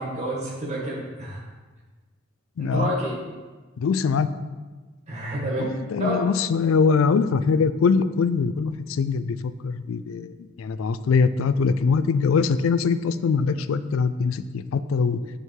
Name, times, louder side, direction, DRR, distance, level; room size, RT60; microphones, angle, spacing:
voice 1, 0.0-1.4 2.6-3.2 5.1-6.2, right 1 dB, 35° right, -5 dB, 1.9 m, -29 dB
voice 2, 2.6-2.9 3.8-4.3 5.6-9.4 9.6-15.2, left 5 dB, 90° left, 13 dB, 0.4 m, -22 dB
8.2 x 3.8 x 4.6 m, 1.3 s
head